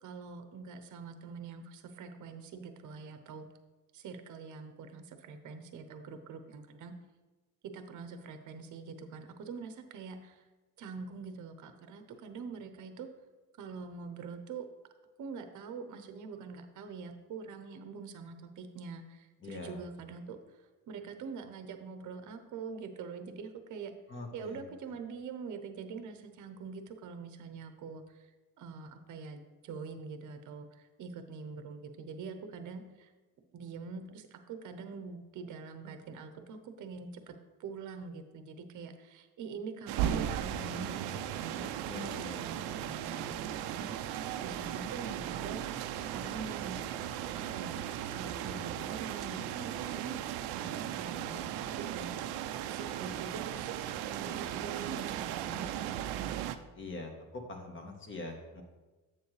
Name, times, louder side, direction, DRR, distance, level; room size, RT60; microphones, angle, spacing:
voice 1, 0.0-3.5 3.9-6.9 7.6-10.4 10.8-13.1 13.6-14.7 15.2-23.9 24.3-28.3 28.6-33.1 33.5-37.3 37.6-45.6 46.1-46.9 47.3-47.8 48.1-56.0, right 5 dB, 50° right, 8 dB, 0.8 m, -44 dB
voice 2, 19.4-19.8 24.1-24.7 41.9-42.5 56.7-58.6, left 2 dB, 30° left, 2 dB, 1.3 m, -43 dB
sound 1, 39.9-56.6, right 11 dB, 90° right, 0.5 m, -37 dB
7.6 x 7.1 x 3.2 m, 1.2 s
cardioid pair, 120°, 38 cm